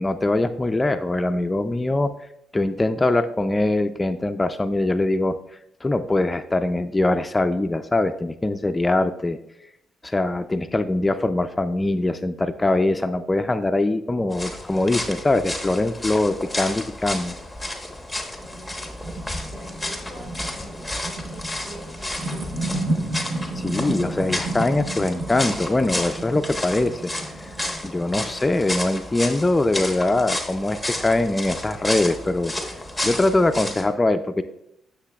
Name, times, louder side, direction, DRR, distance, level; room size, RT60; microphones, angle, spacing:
voice 1, 0.0-2.1 2.5-5.4 5.8-9.4 10.0-17.4 23.2-27.1 27.4-27.5 27.8-32.5 33.0-34.4, left 2 dB, 20° left, 9 dB, 0.3 m, -22 dB
sound 1, 14.3-33.9, left 1 dB, ahead, 1.1 m, -32 dB
sound 2, 18.4-28.5, right 2 dB, 80° right, 1.1 m, -32 dB
voice 2, 18.5-18.9 19.5-23.0, equal, 60° right, 0 dB, 2.7 m, -45 dB
9.6 x 6.6 x 2.3 m, 0.78 s
cardioid pair, 90°, 0 cm